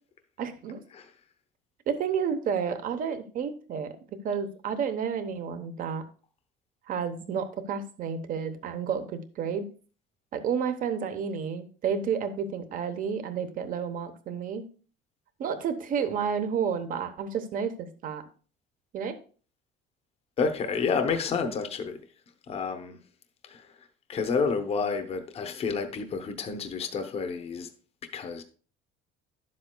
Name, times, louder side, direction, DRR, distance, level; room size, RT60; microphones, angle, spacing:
voice 1, 0.4-0.8 1.9-6.0 6.9-9.6 10.3-14.6 15.4-18.2 18.9-19.2, right 7 dB, 40° right, 0.9 m, -31 dB
voice 2, 20.4-22.0 22.5-23.0 23.5-23.7 24.1-27.7 28.1-28.4, left 5 dB, 30° left, 0.8 m, -29 dB
11.5 x 7.5 x 2.2 m
cardioid pair, 175°, 21 cm